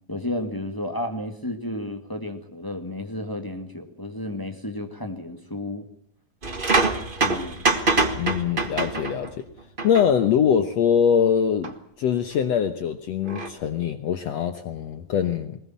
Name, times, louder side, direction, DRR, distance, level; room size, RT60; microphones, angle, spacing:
voice 1, 0.1-5.8 7.2-7.6, left 1 dB, 10° left, 6 dB, 1.1 m, -32 dB
sound 1, 6.4-9.3 9.8-10.1 11.6-11.7 13.2-13.5, right 3 dB, 55° right, 0.5 m, -24 dB
voice 2, 8.2-9.4 9.8-15.6, left 8 dB, 65° left, 10 dB, 1.9 m, -23 dB
21.0 x 19.5 x 7.3 m, 0.62 s
omnidirectional pair, 4.0 m